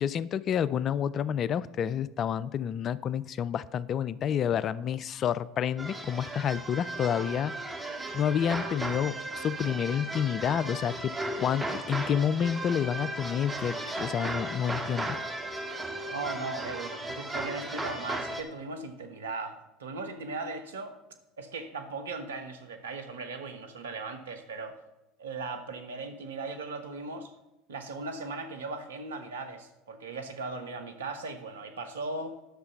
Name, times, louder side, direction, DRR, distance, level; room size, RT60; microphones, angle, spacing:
voice 1, 0.0-7.5 8.1-11.1 11.4-15.2, left 8 dB, 45° left, 18 dB, 0.4 m, -29 dB
sound 1, 5.8-18.4, right 2 dB, 10° right, 1.6 m, -36 dB
voice 2, 16.1-21.0 21.4-24.8 25.2-27.3 27.7-32.3, right 3 dB, 80° right, 7 dB, 1.1 m, -38 dB
10.5 x 6.7 x 5.5 m, 0.95 s
hypercardioid pair, 70°, 0 cm